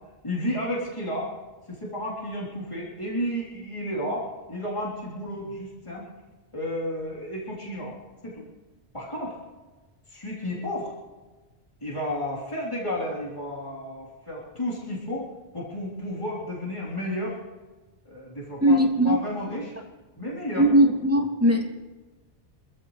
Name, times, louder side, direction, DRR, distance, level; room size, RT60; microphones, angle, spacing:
voice 1, 0.2-1.3 1.7-6.1 6.5-8.0 8.2-8.5 8.9-9.4 10.1-10.9 11.8-15.3 15.5-17.4 18.1-18.8 19.0-19.8 20.2-20.8, left 1 dB, 30° left, -6 dB, 3.7 m, -32 dB
voice 2, 18.6-19.2 20.5-21.7, right 1 dB, 15° right, -1 dB, 2.6 m, -19 dB
26.5 x 14.0 x 3.2 m, 1.2 s
omnidirectional pair, 1.1 m